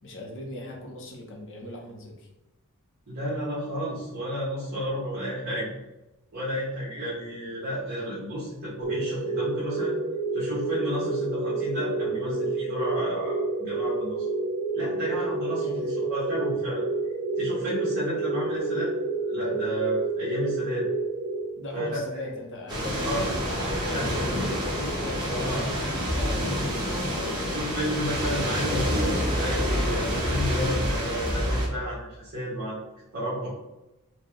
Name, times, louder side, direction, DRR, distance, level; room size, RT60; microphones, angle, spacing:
voice 1, 0.0-2.3 15.6-15.9 21.6-26.7 27.0-27.4, left 1 dB, 55° left, 0 dB, 0.8 m, -39 dB
voice 2, 3.1-5.7 6.3-9.9 10.3-14.2 14.7-16.8 17.4-18.9 19.2-20.9 21.7-22.0 23.0-23.2 23.5-24.0 25.3-25.6 27.4-32.8 33.1-33.5, equal, 45° right, -10 dB, 1.4 m, -32 dB
sound 1, 8.8-22.0, right 3 dB, 85° right, 0.4 m, -29 dB
sound 2, 22.7-31.7, equal, 20° right, 1.0 m, -27 dB
4.3 x 2.3 x 3.1 m, 1.0 s
head